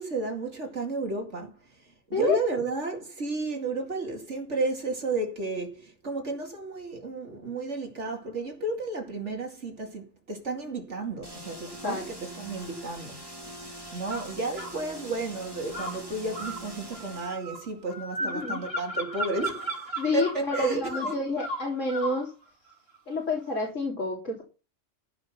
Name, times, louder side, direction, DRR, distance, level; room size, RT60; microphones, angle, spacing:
voice 1, 0.0-1.5 2.1-13.2 13.9-21.2, right 2 dB, 70° right, 2.7 m, -32 dB
sound 1, 11.2-17.4, right 1 dB, 20° right, 2.9 m, -43 dB
sound 2, 14.1-14.8 15.7-22.2, equal, 55° right, 4.7 m, -35 dB
voice 2, 18.2-18.6 20.0-22.3 23.1-24.4, left 2 dB, 85° left, 3.9 m, -29 dB
15.0 x 6.0 x 5.9 m
omnidirectional pair, 1.3 m